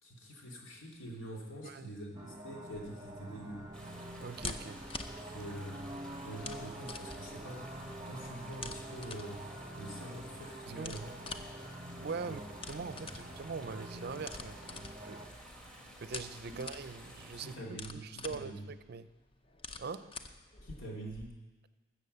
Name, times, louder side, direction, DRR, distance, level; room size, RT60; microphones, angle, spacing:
voice 1, 0.0-3.6 5.3-11.1 12.2-12.4 12.8-13.1 16.5-16.6 17.3-18.7 20.6-21.3, right 1 dB, 85° left, 3.0 m, -46 dB
sound 1, 2.1-15.3, right 1 dB, 20° right, 1.1 m, -47 dB
sound 2, 2.7-21.3, left 3 dB, 30° left, 0.6 m, -48 dB
sound 3, 3.7-17.6, equal, 5° left, 1.7 m, -53 dB
voice 2, 4.2-4.8 10.7-11.0 12.0-12.4 12.7-15.2 16.0-19.1 19.8-20.2, right 4 dB, 55° right, 0.5 m, -42 dB
14.5 x 7.3 x 6.8 m
head